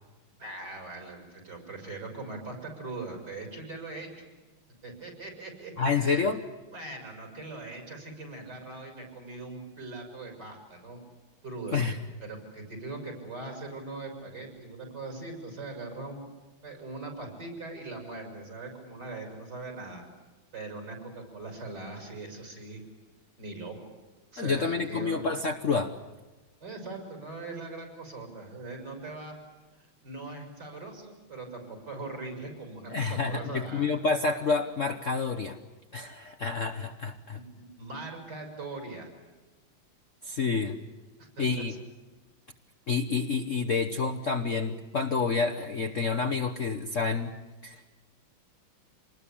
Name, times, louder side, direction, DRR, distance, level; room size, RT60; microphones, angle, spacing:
voice 1, 0.4-4.3 4.8-6.3 6.7-11.0 11.4-11.8 12.2-16.3 16.6-20.0 20.5-22.8 23.4-23.9 24.3-25.3 26.6-29.4 30.0-34.0 37.3-39.1 41.2-41.4, right 2 dB, 50° right, 3 dB, 6.7 m, -41 dB
voice 2, 5.8-6.4 11.7-12.0 24.4-25.9 32.9-35.6 35.9-37.4 40.2-40.8 41.4-41.7 42.9-47.3 47.6-47.9, left 4 dB, 45° left, 4 dB, 1.2 m, -28 dB
26.5 x 20.0 x 8.5 m, 1.2 s
omnidirectional pair, 2.3 m